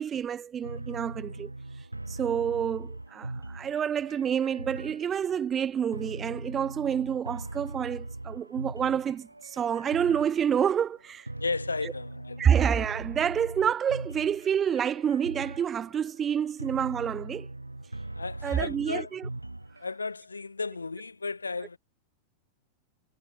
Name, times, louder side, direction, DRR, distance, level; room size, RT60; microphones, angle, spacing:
voice 1, 0.0-1.5 1.8-11.3 11.8-11.9 12.4-17.5 18.4-19.3, right 8 dB, 25° right, 0.9 m, -28 dB
sound 1, 0.6-20.0, right 2 dB, 85° right, 1.5 m, -41 dB
voice 2, 11.4-12.5 18.1-19.1 19.8-21.8, left 4 dB, 80° left, 5.7 m, -34 dB
figure-of-eight pair, 90°, 0 cm